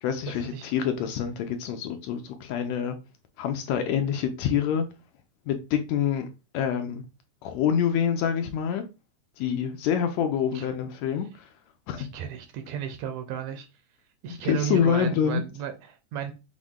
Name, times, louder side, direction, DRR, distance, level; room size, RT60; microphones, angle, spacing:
voice 1, 0.0-3.0 3.4-4.9 5.5-6.3 6.5-7.0 7.4-8.8 9.4-11.5 11.9-12.1 14.5-15.4, left 8 dB, 75° left, 1.7 m, -26 dB
voice 2, 12.0-13.7 14.2-16.3, right 9 dB, 75° right, 1.7 m, -34 dB
6.1 x 2.2 x 3.6 m
omnidirectional pair, 3.4 m